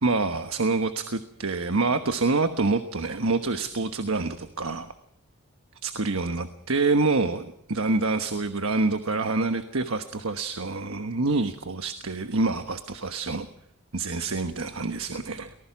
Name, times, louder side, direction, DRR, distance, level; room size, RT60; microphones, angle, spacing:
voice 1, 0.0-4.9 5.8-13.5 13.9-15.5, right 3 dB, 70° right, 8 dB, 1.2 m, -26 dB
24.0 x 19.5 x 6.0 m, 0.72 s
head